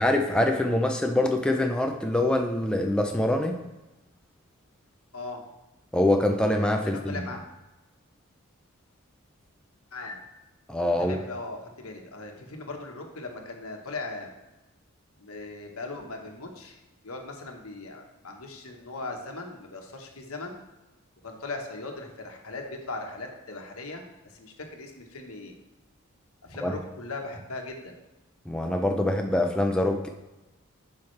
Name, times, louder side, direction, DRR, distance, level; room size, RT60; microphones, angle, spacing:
voice 1, 0.0-3.6 5.9-7.2 10.7-11.2 26.6-26.7 28.5-30.1, left 1 dB, 5° left, 3 dB, 0.4 m, -24 dB
voice 2, 6.9-7.4 9.9-10.2 11.0-14.3 15.2-16.8 17.0-20.6 21.2-25.5 26.4-27.9, left 3 dB, 85° left, 3 dB, 1.2 m, -39 dB
8.7 x 5.7 x 3.2 m, 1.0 s
head